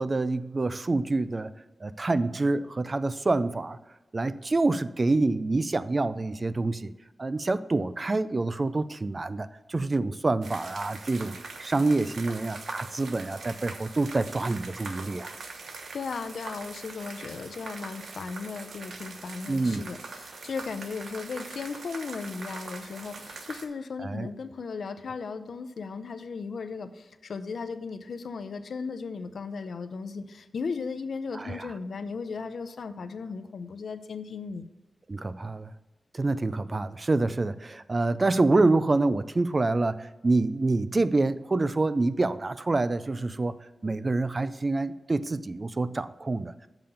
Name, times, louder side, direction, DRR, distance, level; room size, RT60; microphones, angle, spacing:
voice 1, 0.0-1.5 1.8-3.8 4.1-6.9 7.2-15.3 19.5-19.8 24.0-24.3 31.3-31.7 35.1-35.7 36.1-43.6 43.8-46.5, right 2 dB, 30° right, 14 dB, 0.3 m, -27 dB
sound 1, 10.4-23.7, right 3 dB, 85° right, 0.9 m, -42 dB
voice 2, 15.9-34.7, left 5 dB, 80° left, 10 dB, 0.6 m, -36 dB
6.8 x 5.7 x 6.9 m, 1.1 s
wide cardioid pair, 145°, 0 cm